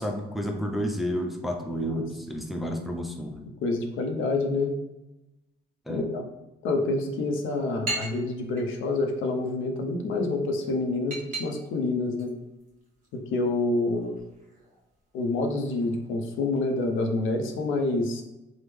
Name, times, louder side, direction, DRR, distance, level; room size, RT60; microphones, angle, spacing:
voice 1, 0.0-3.5 5.9-6.1, equal, ahead, 2 dB, 0.4 m, -31 dB
voice 2, 3.6-4.7 5.9-6.2 6.6-12.3 13.1-14.2 15.1-18.2, left 2 dB, 80° left, 3 dB, 0.6 m, -27 dB
sound 1, 7.0-17.0, right 2 dB, 45° right, 1.2 m, -42 dB
3.4 x 2.0 x 3.1 m, 0.99 s
cardioid pair, 90°, 20 cm